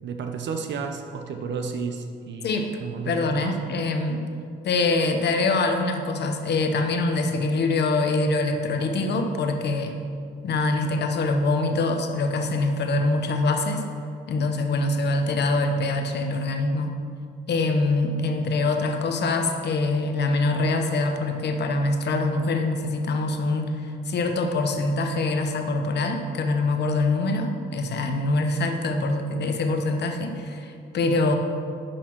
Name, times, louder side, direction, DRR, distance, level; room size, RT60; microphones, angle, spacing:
voice 1, 0.0-3.6, right 5 dB, 65° right, 5 dB, 0.8 m, -32 dB
voice 2, 2.4-2.8 3.1-4.3 4.6-10.0 10.4-13.8 14.3-16.9 17.5-31.4, left 2 dB, 60° left, 5 dB, 1.1 m, -24 dB
11.0 x 4.3 x 6.2 m, 2.3 s
cardioid pair, 90°, 20 cm